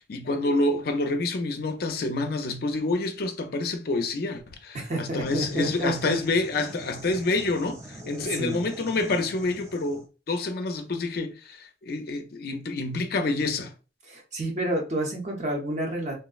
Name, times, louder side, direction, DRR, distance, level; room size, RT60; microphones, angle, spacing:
voice 1, 0.0-13.7, left 2 dB, 55° left, 0.4 m, -28 dB
voice 2, 4.7-6.1 8.0-8.6 14.1-16.1, right 1 dB, 40° right, 0.8 m, -29 dB
sound 1, 5.3-10.1, right 1 dB, 15° right, 0.4 m, -44 dB
3.5 x 2.0 x 2.3 m
head